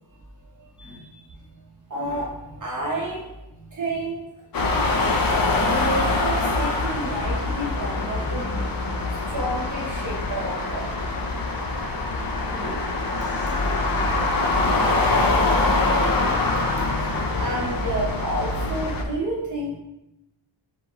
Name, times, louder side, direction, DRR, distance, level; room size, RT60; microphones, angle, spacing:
voice 1, 0.8-1.4 11.8-11.9 12.5-12.9 14.2-14.3 16.1-16.2, equal, ahead, -6 dB, 1.0 m, -43 dB
voice 2, 1.9-3.3 3.5-4.2 5.6-8.7 9.3-10.9 13.2-13.9 16.5-16.6 16.9-17.1 17.4-19.7, right 1 dB, 40° right, -3 dB, 0.8 m, -30 dB
sound 1, 4.5-19.0, left 2 dB, 50° left, 0.6 m, -24 dB
4.7 x 3.7 x 3.0 m, 0.92 s
wide cardioid pair, 175°, 47 cm